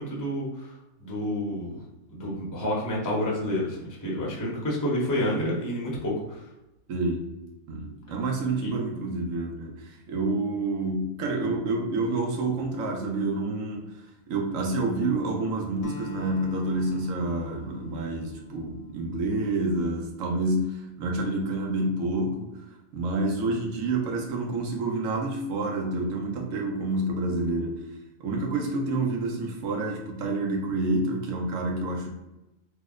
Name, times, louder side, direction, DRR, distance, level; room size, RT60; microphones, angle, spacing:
voice 1, 0.0-1.7 2.1-6.4 8.6-8.7, left 1 dB, 20° left, -4 dB, 0.7 m, -29 dB
voice 2, 6.9-7.3 7.7-13.9 14.3-22.5 22.9-27.8 28.2-32.1, right 2 dB, 70° right, 1 dB, 1.1 m, -28 dB
Acoustic guitar, 15.8-20.3, left 3 dB, 70° left, 1.0 m, -45 dB
3.1 x 2.1 x 3.6 m, 0.97 s
omnidirectional pair, 1.4 m